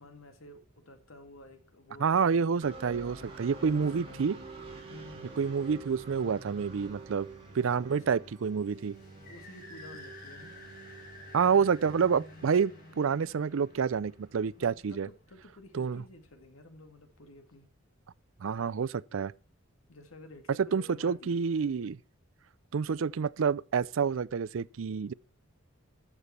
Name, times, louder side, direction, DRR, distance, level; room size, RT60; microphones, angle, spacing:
voice 1, 0.0-2.6 3.8-4.3 4.9-5.4 7.8-8.1 9.3-10.6 14.6-17.7 19.9-21.4, left 1 dB, 80° left, 2.2 m, -52 dB
voice 2, 2.0-4.4 5.4-7.3 7.5-8.9 11.3-12.7 13.0-15.1 15.7-16.0 18.4-19.3 20.7-22.0 22.7-25.1, right 6 dB, 75° right, 0.4 m, -28 dB
sound 1, 2.6-14.4, right 3 dB, 25° right, 3.0 m, -48 dB
sound 2, 8.4-15.7, left 2 dB, 45° left, 4.5 m, -52 dB
13.0 x 7.1 x 4.3 m
head